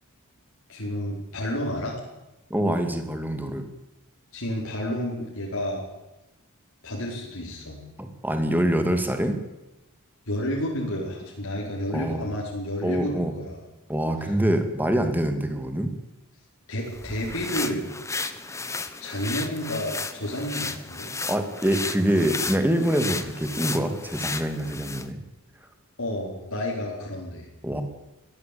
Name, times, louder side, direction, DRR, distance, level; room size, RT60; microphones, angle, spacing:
voice 1, 0.7-2.0 4.3-5.8 6.8-7.8 10.3-13.6 14.2-14.3 16.7-17.9 19.0-21.1 26.0-27.5, left 1 dB, 70° left, -3 dB, 4.8 m, -30 dB
voice 2, 2.5-3.7 8.0-9.3 11.9-12.3 12.8-13.3 13.9-15.9 21.3-25.2 27.6-27.8, right 1 dB, 10° right, 7 dB, 2.4 m, -25 dB
sound 1, 16.9-25.1, left 3 dB, 15° left, 1.1 m, -34 dB
21.0 x 14.5 x 8.7 m, 0.98 s
head